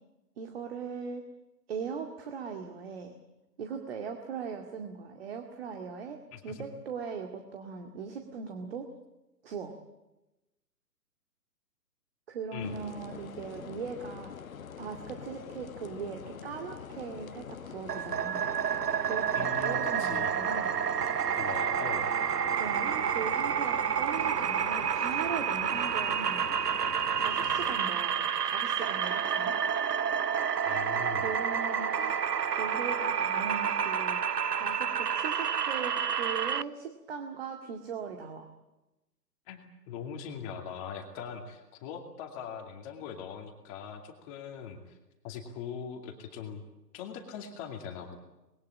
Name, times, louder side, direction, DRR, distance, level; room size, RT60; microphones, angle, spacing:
voice 1, 0.4-1.3 1.7-3.1 3.6-8.9 9.4-9.8 12.3-14.3 14.8-18.5 19.0-20.7 22.5-26.4 27.2-29.6 31.1-32.2 32.6-38.5, right 6 dB, 35° right, 4 dB, 2.2 m, -39 dB
voice 2, 6.3-6.6 12.5-12.7 19.3-20.3 21.4-22.1 30.6-31.3 39.5-45.0 45.2-46.6 46.9-48.2, left 7 dB, 20° left, 3 dB, 2.4 m, -41 dB
sound 1, 12.6-27.8, left 7 dB, 55° left, 1.3 m, -45 dB
sound 2, 17.9-36.6, right 8 dB, 70° right, 0.9 m, -29 dB
25.0 x 21.0 x 8.6 m, 1.0 s
figure-of-eight pair, 145°, 49 cm